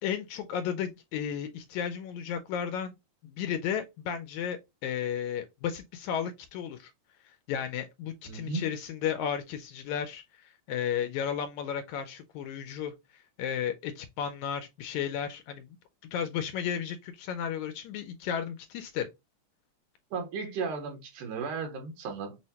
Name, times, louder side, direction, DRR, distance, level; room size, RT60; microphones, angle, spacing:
voice 1, 0.0-2.9 3.2-6.9 7.5-15.8 16.0-19.1, left 8 dB, 80° left, 1.8 m, -34 dB
voice 2, 8.3-8.7 20.1-22.4, right 4 dB, 80° right, 2.5 m, -35 dB
6.1 x 2.1 x 2.7 m
omnidirectional pair, 3.6 m